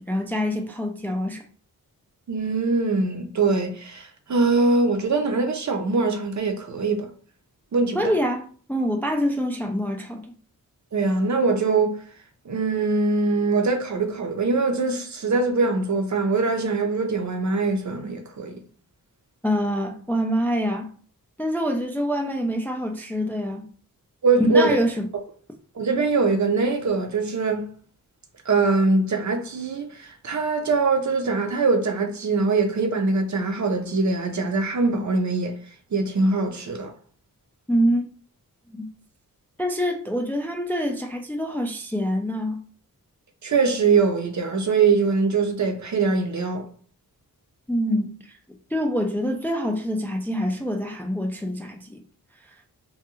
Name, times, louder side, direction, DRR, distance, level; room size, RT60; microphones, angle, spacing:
voice 1, 0.0-1.4 7.9-10.3 19.4-20.9 21.4-23.7 24.4-25.1 37.7-38.1 38.7-38.9 39.6-42.6 47.7-48.1 48.7-52.0, equal, 5° left, 0.3 m, -25 dB
voice 2, 2.3-7.1 7.7-8.1 10.9-12.0 12.5-18.6 24.2-24.8 25.8-27.7 28.5-35.5 35.9-36.9 43.4-46.7, right 3 dB, 50° right, 0.6 m, -22 dB
2.3 x 2.2 x 2.9 m
wide cardioid pair, 65°, 36 cm